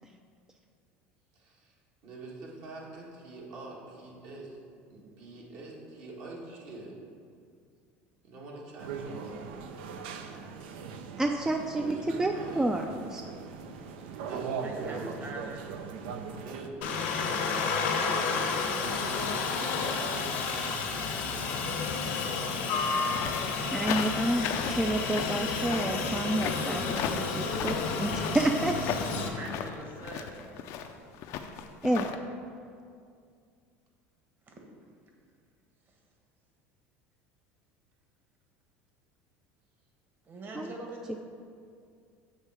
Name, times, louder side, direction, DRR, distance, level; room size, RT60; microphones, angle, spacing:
voice 1, 1.3-1.7 2.0-4.6 4.9-7.0 8.2-9.5 11.8-12.7 14.3-15.3 16.4-17.8 18.6-21.0 21.3-22.9, right 2 dB, 60° right, -3 dB, 1.7 m, -45 dB
sound 1, 8.8-16.7, right 6 dB, 80° right, 0.5 m, -40 dB
voice 2, 11.2-12.8 13.1-13.2 23.7-26.8 27.2-28.8 31.8-32.1 40.6-40.7, right 1 dB, 10° right, 4 dB, 0.4 m, -29 dB
voice 3, 14.6-15.9 29.3-30.6 34.5-34.6 40.2-41.2, right 2 dB, 35° right, 1 dB, 1.3 m, -44 dB
Aircraft, 16.8-29.3, left 4 dB, 80° left, 1.0 m, -31 dB
sound 2, 23.1-32.1, left 8 dB, 60° left, 0.5 m, -36 dB
7.3 x 3.2 x 6.0 m, 2.3 s
supercardioid pair, 90°, 6 cm